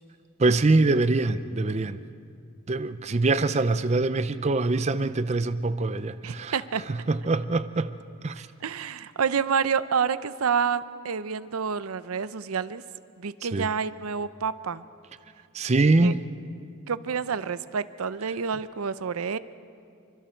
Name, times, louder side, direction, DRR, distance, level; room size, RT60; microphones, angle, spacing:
voice 1, 0.4-2.0 2.7-6.6 6.9-7.9 8.2-8.5 13.4-13.7 15.5-16.2, right 3 dB, 30° right, 12 dB, 0.5 m, -24 dB
voice 2, 6.2-6.8 8.6-12.8 13.2-14.8 16.0-16.1 16.9-19.4, right 6 dB, 90° right, 14 dB, 0.6 m, -28 dB
26.5 x 24.5 x 4.5 m, 2.4 s
head